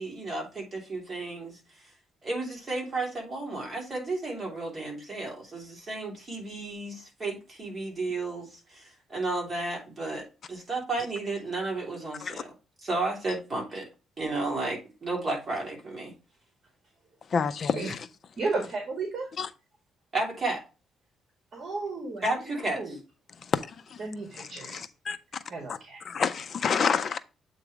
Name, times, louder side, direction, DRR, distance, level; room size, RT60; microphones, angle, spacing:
voice 1, 0.0-1.6 2.2-12.5 12.8-13.9 14.2-16.1 20.1-20.6 22.2-23.0, right 2 dB, 25° right, 3.0 m, -33 dB
voice 2, 17.3-18.0 19.4-19.5 23.4-24.0 24.4-25.2 25.7-25.8 26.0-27.2, left 6 dB, 40° left, 0.5 m, -29 dB
voice 3, 18.4-19.3 21.5-23.0 24.0-24.9 25.5-26.0, right 3 dB, 45° right, 1.8 m, -34 dB
8.0 x 3.2 x 4.8 m
cardioid pair, 160°, 0 cm